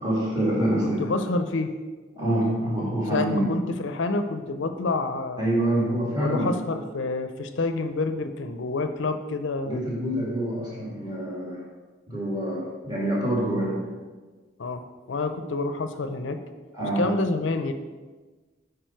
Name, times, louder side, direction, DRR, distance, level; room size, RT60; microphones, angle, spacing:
voice 1, 0.0-1.0 2.2-3.5 5.4-6.5 9.6-11.6 12.1-13.8 16.7-17.0, right 1 dB, 20° right, -6 dB, 2.5 m, -26 dB
voice 2, 0.8-1.7 3.1-5.5 6.2-9.8 14.6-14.8 15.1-16.4 17.0-17.7, left 3 dB, 70° left, 8 dB, 0.5 m, -28 dB
9.3 x 4.9 x 4.5 m, 1.3 s
head